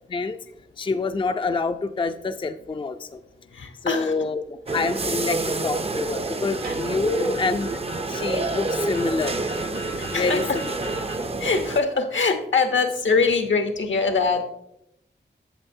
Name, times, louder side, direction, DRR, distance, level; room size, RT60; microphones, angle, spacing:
voice 1, 0.8-3.2 3.8-7.7 8.0-9.5 10.1-10.7, left 3 dB, 25° left, 9 dB, 0.4 m, -27 dB
voice 2, 3.5-4.1 6.6-6.8 9.9-10.6 11.4-14.5, left 4 dB, 80° left, 6 dB, 0.9 m, -23 dB
sound 1, 4.7-11.8, right 2 dB, 30° right, 0.5 m, -28 dB
sound 2, 4.7-11.2, equal, 75° right, 1.4 m, -40 dB
sound 3, 6.6-8.5, right 2 dB, 50° right, 0.8 m, -44 dB
8.9 x 6.8 x 2.7 m, 0.79 s
cardioid pair, 50°, 20 cm